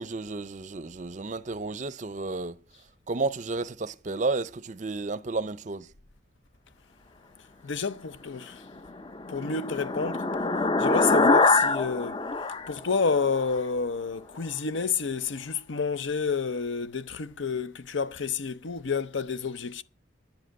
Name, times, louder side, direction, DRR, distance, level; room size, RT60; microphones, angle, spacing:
voice 1, 0.0-2.6 3.1-5.9, right 3 dB, 40° right, 0.5 m, -32 dB
voice 2, 7.6-8.6 9.3-10.2 10.8-12.2 12.7-19.8, left 5 dB, 75° left, 0.7 m, -29 dB
sound 1, 8.8-13.6, left 3 dB, 25° left, 0.5 m, -25 dB
10.5 x 7.7 x 7.7 m
head